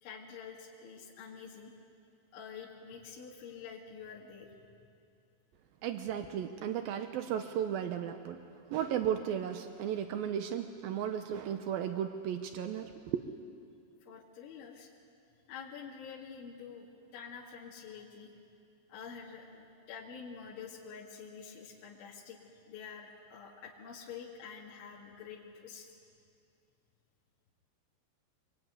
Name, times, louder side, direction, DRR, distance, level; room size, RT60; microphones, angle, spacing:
voice 1, 0.0-1.7 2.3-4.6 14.0-14.9 15.5-16.9 17.1-18.3 18.9-22.4 22.7-25.9, left 6 dB, 80° left, -5 dB, 4.5 m, -47 dB
voice 2, 5.8-8.4 8.7-13.3, right 9 dB, 85° right, 7 dB, 2.1 m, -35 dB
25.0 x 23.0 x 9.6 m, 2.5 s
omnidirectional pair, 5.4 m